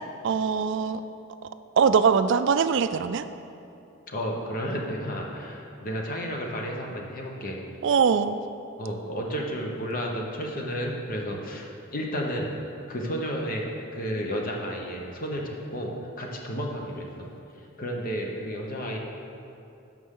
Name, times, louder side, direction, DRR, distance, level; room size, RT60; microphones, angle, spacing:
voice 1, 0.2-1.0 1.8-3.2 7.8-8.4, right 6 dB, 55° right, 12 dB, 0.3 m, -22 dB
voice 2, 4.1-7.6 8.8-12.5 12.9-13.7 13.9-15.9 16.2-17.3 17.8-19.0, equal, 40° left, 0 dB, 1.0 m, -32 dB
13.0 x 5.1 x 3.8 m, 2.7 s
head